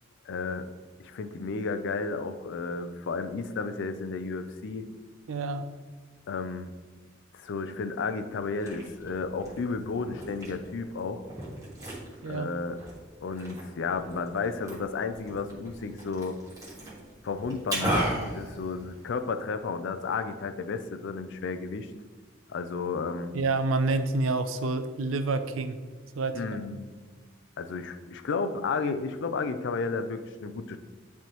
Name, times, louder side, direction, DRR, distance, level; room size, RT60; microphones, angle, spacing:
voice 1, 0.3-0.6 1.0-4.9 6.3-6.7 7.3-11.2 12.2-12.8 13.2-16.4 17.2-21.9 22.5-23.3 26.3-26.9 27.6-30.8, left 4 dB, 65° left, 9 dB, 0.4 m, -32 dB
voice 2, 5.3-5.7 12.2-12.5 23.3-25.8 26.1-26.4, right 3 dB, 75° right, 9 dB, 0.5 m, -28 dB
Liquid, 8.3-19.3, right 1 dB, 20° right, 1.7 m, -37 dB
10.0 x 3.5 x 3.0 m, 1.4 s
head